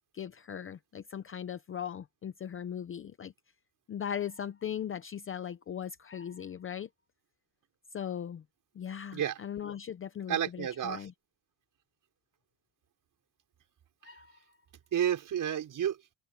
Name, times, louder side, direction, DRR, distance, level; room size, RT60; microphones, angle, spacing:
voice 1, 0.1-3.3 3.9-6.9 7.9-8.4 8.8-11.1 14.0-14.4, left 9 dB, 25° left, 0.6 m, -39 dB
voice 2, 10.3-11.1 14.9-16.0, right 9 dB, 40° right, 5.0 m, -31 dB
cardioid pair, 165°, 49 cm